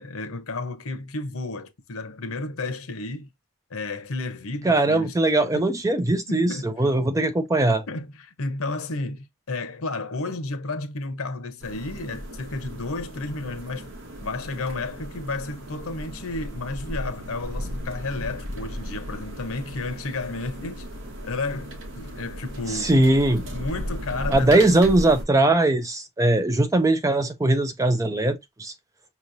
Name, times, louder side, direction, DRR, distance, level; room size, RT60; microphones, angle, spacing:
voice 1, 0.0-3.3 3.7-5.7 6.3-6.7 7.9-13.9 14.2-20.9 21.2-22.9 23.5-24.7, left 2 dB, 85° left, 0.9 m, -32 dB
voice 2, 4.6-7.8 22.7-23.4 24.3-28.7, right 2 dB, 15° right, 0.4 m, -20 dB
sound 1, 11.6-25.2, equal, 60° right, 1.1 m, -36 dB
5.5 x 3.0 x 2.6 m
head